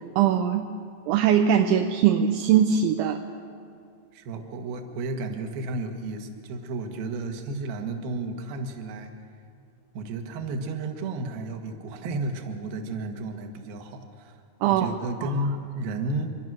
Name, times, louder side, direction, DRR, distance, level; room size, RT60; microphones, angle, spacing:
voice 1, 0.2-0.7 1.1-3.2 14.6-15.3, right 8 dB, 80° right, 5 dB, 3.0 m, -21 dB
voice 2, 4.1-9.1 9.9-16.3, right 2 dB, 60° right, 4 dB, 2.9 m, -32 dB
25.0 x 23.0 x 6.2 m, 2.3 s
omnidirectional pair, 5.7 m